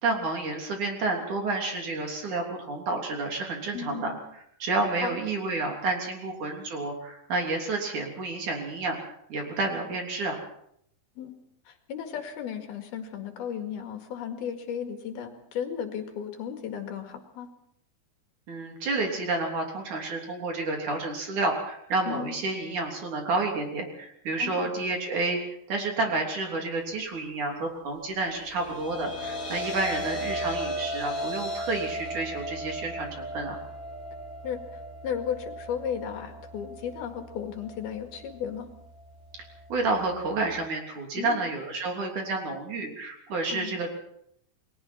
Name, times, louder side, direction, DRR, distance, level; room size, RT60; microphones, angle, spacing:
voice 1, 0.0-4.1 4.6-10.4 18.5-33.6 39.7-43.9, right 3 dB, 50° right, 2 dB, 4.6 m, -30 dB
voice 2, 3.7-4.2 5.0-5.2 11.2-11.3 11.7-17.5 22.1-22.4 24.4-24.7 34.4-34.6 35.0-38.7 41.2-41.4 43.5-43.7, left 8 dB, 75° left, 5 dB, 4.0 m, -35 dB
sound 1, 28.2-40.5, equal, 20° left, 3.5 m, -37 dB
29.0 x 21.0 x 4.5 m, 0.72 s
omnidirectional pair, 4.5 m